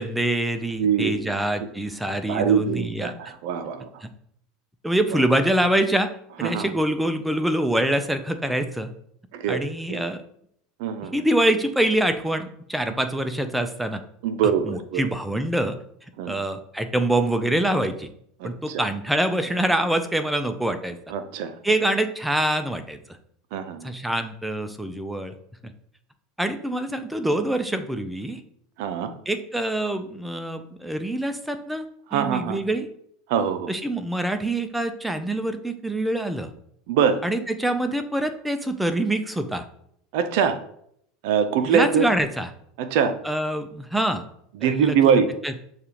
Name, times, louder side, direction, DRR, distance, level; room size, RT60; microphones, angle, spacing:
voice 1, 0.0-3.1 4.0-4.1 4.8-6.1 6.4-8.9 9.5-10.2 11.1-14.0 14.6-15.8 16.3-18.1 18.4-21.0 21.6-23.0 23.8-25.3 26.4-28.4 29.3-31.9 32.1-32.9 33.7-36.5 37.2-39.7 41.6-42.5 43.2-44.2 44.6-45.5, right 1 dB, 5° right, 8 dB, 0.4 m, -25 dB
voice 2, 0.8-1.3 2.3-3.9 6.4-6.7 9.3-9.6 9.9-10.0 10.8-11.2 14.2-15.1 16.2-16.3 18.4-18.8 21.1-21.5 23.5-23.9 28.8-29.1 32.1-32.6 33.3-33.7 36.9-37.2 40.1-40.6 41.2-42.1 42.8-43.1 44.6-45.3, right 7 dB, 70° right, 9 dB, 0.5 m, -23 dB
6.5 x 2.3 x 2.9 m, 0.70 s
supercardioid pair, 120°, 0 cm